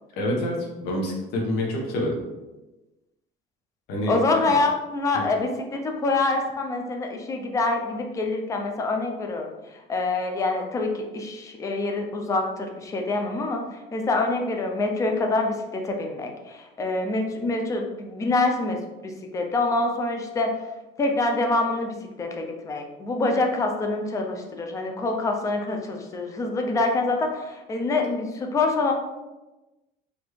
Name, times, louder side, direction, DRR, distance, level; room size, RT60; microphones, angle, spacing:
voice 1, 0.2-2.2 3.9-4.1 4.4-4.5 5.1-5.2, left 1 dB, 75° left, -1 dB, 1.1 m, -27 dB
voice 2, 4.1-20.6 21.0-28.9, left 2 dB, 20° left, 3 dB, 0.4 m, -26 dB
4.2 x 3.2 x 3.1 m, 1.1 s
cardioid pair, 175°, 17 cm